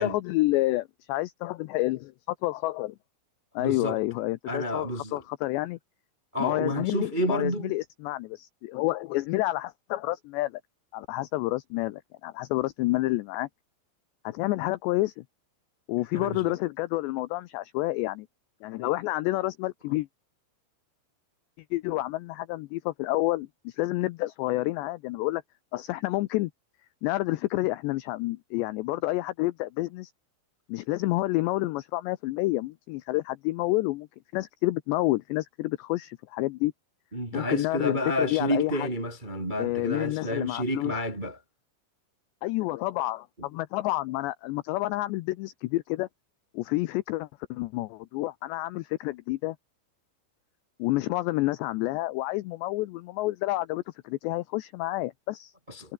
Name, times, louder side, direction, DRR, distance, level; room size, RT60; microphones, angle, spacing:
voice 1, 0.0-2.1 2.4-3.0 3.6-5.8 6.4-10.6 10.9-13.5 14.2-15.2 15.9-18.3 18.6-20.1 21.7-25.4 25.7-26.5 27.0-30.1 30.7-34.1 34.3-36.7 37.3-38.9 39.6-40.9 42.4-46.1 46.5-49.6 50.8-55.5 55.8-55.9, left 18 dB, 85° left, 2.5 m, -29 dB
voice 2, 3.6-4.0 4.5-5.2 6.3-7.7 16.1-16.5 37.1-41.4 55.7-55.9, equal, 15° right, 1.5 m, -30 dB
omnidirectional pair, 5.8 m